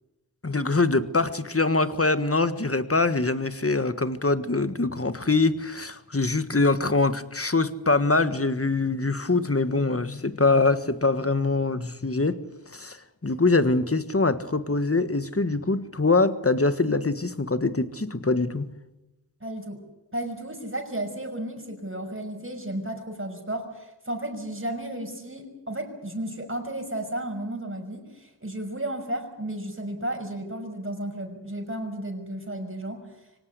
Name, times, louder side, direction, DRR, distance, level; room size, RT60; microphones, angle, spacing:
voice 1, 0.4-12.4 12.7-13.0 13.2-18.7, left 3 dB, 30° left, 1.5 m, -24 dB
voice 2, 19.4-19.8 20.1-33.0, right 1 dB, 30° right, 5.9 m, -33 dB
24.5 x 18.5 x 8.2 m
wide cardioid pair, 55°, 44 cm